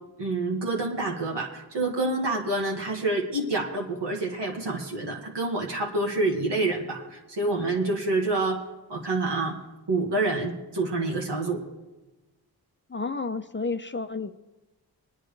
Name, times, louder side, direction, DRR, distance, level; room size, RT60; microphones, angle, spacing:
voice 1, 0.2-8.6 8.9-9.6 9.9-11.6, right 2 dB, 90° right, 0 dB, 2.0 m, -27 dB
voice 2, 12.9-14.3, left 4 dB, 30° left, 9 dB, 0.7 m, -31 dB
23.5 x 10.0 x 3.4 m, 1.1 s
cardioid pair, 50°, 41 cm